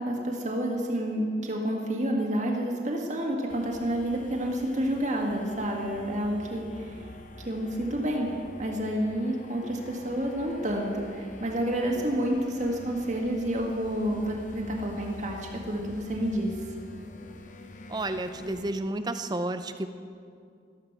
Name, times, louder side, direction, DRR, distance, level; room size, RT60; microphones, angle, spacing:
voice 1, 0.0-7.1 7.4-8.3 8.6-16.5, right 1 dB, 40° right, -1 dB, 1.7 m, -29 dB
sound 1, 3.5-18.7, left 1 dB, 45° left, 0.9 m, -47 dB
voice 2, 17.9-19.9, right 2 dB, 20° right, 10 dB, 0.5 m, -31 dB
14.5 x 12.5 x 5.9 m, 2.3 s
head